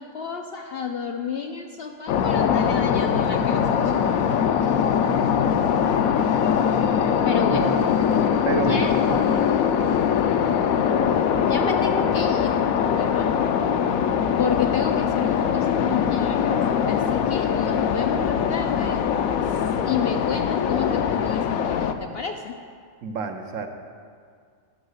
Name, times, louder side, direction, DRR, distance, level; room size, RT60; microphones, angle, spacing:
voice 1, 0.0-3.9 7.2-7.7 8.5-8.9 11.4-12.5 12.9-13.3 14.4-16.6 16.8-19.0 19.5-22.6, left 6 dB, 65° left, 4 dB, 0.6 m, -30 dB
sound 1, 2.1-21.9, left 7 dB, 90° left, 1.0 m, -22 dB
voice 2, 7.4-7.9 8.4-9.2 23.0-23.7, right 5 dB, 70° right, 5 dB, 1.2 m, -29 dB
10.0 x 6.3 x 6.4 m, 2.1 s
omnidirectional pair, 1.4 m